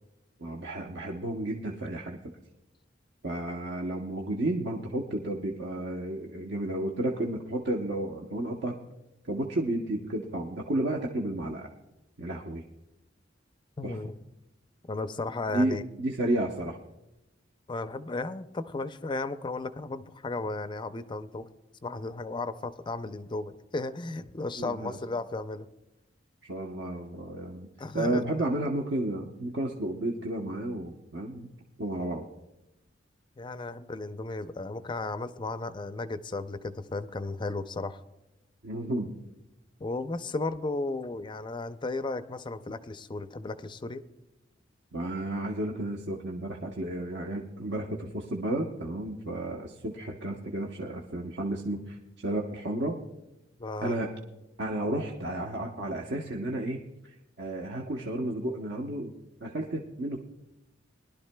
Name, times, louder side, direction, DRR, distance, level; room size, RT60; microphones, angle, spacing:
voice 1, 0.4-2.2 3.2-8.8 9.2-11.7 12.2-12.6 13.8-14.0 15.5-16.8 24.6-25.0 26.4-27.7 27.9-31.5 31.8-32.2 38.6-39.2 44.9-52.0 52.2-53.0 53.8-54.1 54.6-59.1 59.4-60.2, right 1 dB, 65° right, 1 dB, 0.9 m, -32 dB
voice 2, 13.8-14.1 14.9-15.8 17.7-21.5 21.8-25.7 27.8-28.2 33.4-38.0 39.8-44.0 53.6-53.9, left 3 dB, 25° left, 12 dB, 0.5 m, -34 dB
21.5 x 11.5 x 2.2 m, 0.97 s
head